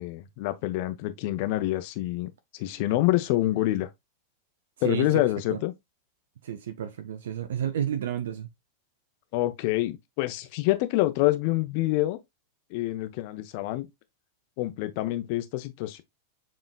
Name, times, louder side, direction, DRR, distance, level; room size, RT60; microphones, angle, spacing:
voice 1, 0.0-3.9 4.8-5.7 9.3-12.2 12.7-13.9 14.6-16.0, left 16 dB, 45° left, 0.6 m, -27 dB
voice 2, 6.4-8.5, right 10 dB, 60° right, 0.5 m, -31 dB
7.0 x 3.1 x 2.3 m
figure-of-eight pair, 90°, 0 cm